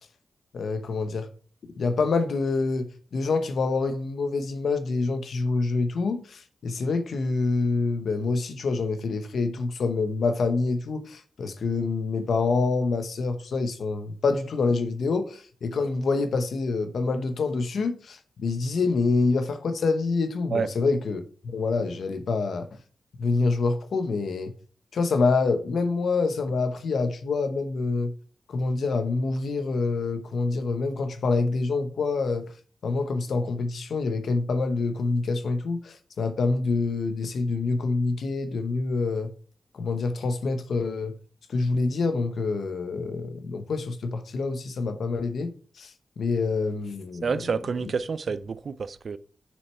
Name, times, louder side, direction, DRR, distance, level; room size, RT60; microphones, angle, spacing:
voice 1, 0.5-1.3 1.8-22.7 23.2-24.5 24.9-28.1 28.5-32.5 32.8-39.3 39.7-41.2 41.5-45.5 45.8-45.9 46.2-47.3, left 3 dB, 80° left, 0.9 m, -26 dB
voice 2, 47.2-49.2, right 5 dB, 65° right, 0.5 m, -28 dB
6.4 x 6.4 x 4.4 m
cardioid pair, 75°, 0 cm